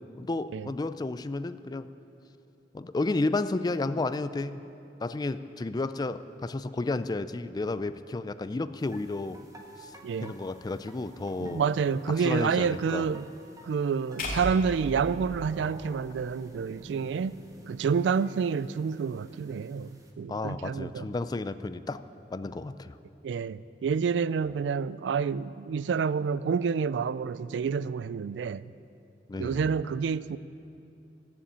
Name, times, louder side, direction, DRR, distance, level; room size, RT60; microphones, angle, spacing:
voice 1, 0.2-1.9 2.7-4.6 5.0-9.4 9.8-9.9 10.2-11.6 12.2-13.0 20.3-22.0 22.3-23.0 29.3-29.6, left 2 dB, 20° left, 0.3 m, -32 dB
sound 1, 8.8-20.1, right 1 dB, 20° right, 1.2 m, -53 dB
voice 2, 10.0-10.3 11.4-13.3 13.6-17.4 17.7-21.1 23.2-28.7 29.4-30.4, right 6 dB, 80° right, 0.3 m, -28 dB
sound 2, 14.2-16.4, left 1 dB, 55° left, 2.1 m, -36 dB
15.0 x 7.1 x 8.7 m
head